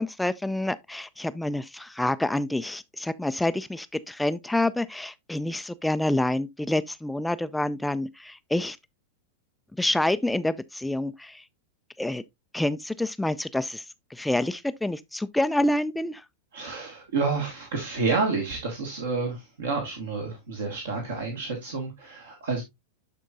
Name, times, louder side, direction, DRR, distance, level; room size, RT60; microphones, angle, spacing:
voice 1, 0.0-8.8 9.8-11.4 12.0-12.2 12.5-13.8 14.1-16.2, left 1 dB, 5° left, 0.3 m, -27 dB
voice 2, 16.5-22.6, right 4 dB, 60° right, 1.6 m, -29 dB
12.0 x 4.5 x 2.5 m
figure-of-eight pair, 90°, 0 cm